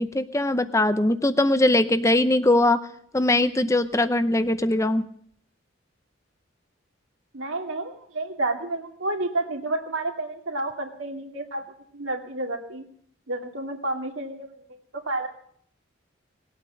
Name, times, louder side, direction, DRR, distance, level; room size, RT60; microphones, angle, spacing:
voice 1, 0.0-2.8 3.1-5.0, left 1 dB, 15° left, 12 dB, 0.6 m, -21 dB
voice 2, 7.3-11.6 11.9-12.8 13.3-14.5 14.9-15.3, right 2 dB, 80° right, 3 dB, 2.3 m, -30 dB
20.0 x 8.5 x 7.6 m, 0.65 s
head